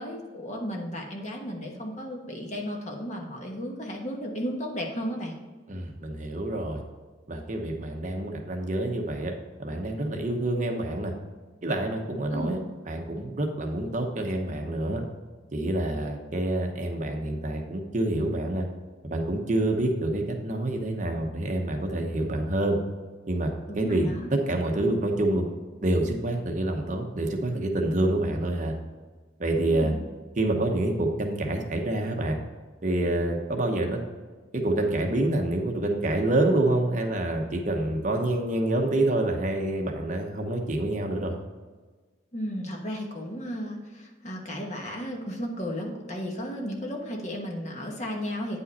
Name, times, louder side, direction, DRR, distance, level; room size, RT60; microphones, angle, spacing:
voice 1, 0.0-5.3 12.3-12.6 23.7-24.3 29.6-30.0 42.3-48.6, equal, 40° left, 0 dB, 1.3 m, -34 dB
voice 2, 5.7-6.8 7.3-9.3 9.6-11.1 11.6-12.6 12.9-15.0 15.5-18.7 19.0-22.8 23.3-24.1 24.5-25.5 25.8-28.7 29.4-29.9 30.4-32.4 32.8-34.0 34.5-41.3, right 1 dB, 40° right, 3 dB, 0.9 m, -27 dB
9.2 x 5.5 x 4.1 m, 1.4 s
head